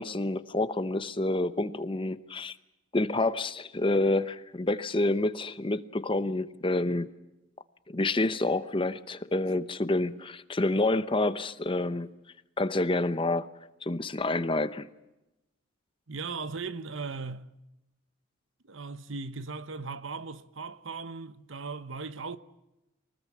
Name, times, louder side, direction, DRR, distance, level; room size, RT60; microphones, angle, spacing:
voice 1, 0.0-2.6 2.9-7.1 7.9-12.1 12.6-13.5 13.8-14.9, left 2 dB, 25° left, 0.8 m, -28 dB
voice 2, 16.1-17.5 18.7-22.4, right 4 dB, 70° right, 1.1 m, -38 dB
24.0 x 19.5 x 8.5 m
head